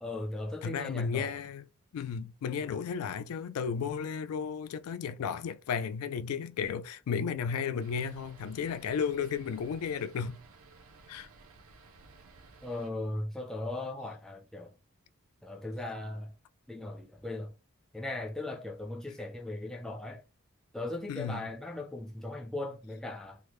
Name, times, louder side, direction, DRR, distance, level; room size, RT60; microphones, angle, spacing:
voice 1, 0.0-1.3 12.6-14.7 15.4-16.3 16.7-17.5 17.9-20.2 20.7-23.4, left 2 dB, ahead, 0.4 m, -38 dB
voice 2, 0.6-1.6 1.9-10.4 11.1-11.3 21.1-21.4, left 6 dB, 80° left, 0.3 m, -34 dB
sound 1, 7.8-12.9, right 3 dB, 75° right, 0.6 m, -56 dB
3.4 x 2.0 x 3.0 m
head